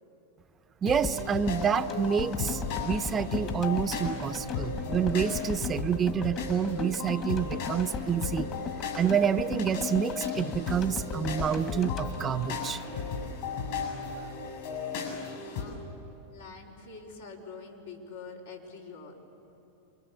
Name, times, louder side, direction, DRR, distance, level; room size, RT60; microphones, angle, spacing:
voice 1, 0.8-8.5 8.9-12.8, right 7 dB, 25° right, 12 dB, 0.7 m, -28 dB
sound 1, 0.9-15.7, left 5 dB, 65° left, 7.9 m, -36 dB
sound 2, 1.0-13.2 13.5-13.6, left 6 dB, 40° left, 1.9 m, -38 dB
voice 2, 15.3-15.9 16.3-19.1, left 4 dB, 85° left, -2 dB, 4.7 m, -45 dB
28.5 x 22.5 x 7.2 m, 2.9 s
hypercardioid pair, 105°, 0 cm